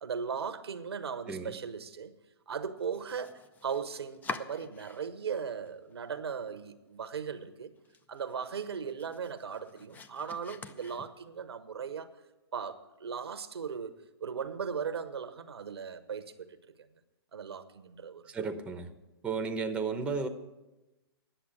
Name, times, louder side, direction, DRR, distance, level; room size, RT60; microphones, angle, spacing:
voice 1, 0.0-2.1 2.5-7.7 8.1-12.1 12.5-13.9 14.2-16.6 17.3-18.2, right 6 dB, 85° right, 11 dB, 0.9 m, -38 dB
Domestic sounds home sounds, 2.8-5.3 5.7-6.4 6.8-6.9 7.3-7.4 7.8-11.5, left 6 dB, 15° left, 0.4 m, -46 dB
voice 2, 18.3-18.9 19.2-20.3, right 4 dB, 10° right, 6 dB, 0.8 m, -33 dB
10.0 x 7.2 x 8.5 m, 1.0 s
hypercardioid pair, 130°, 13 cm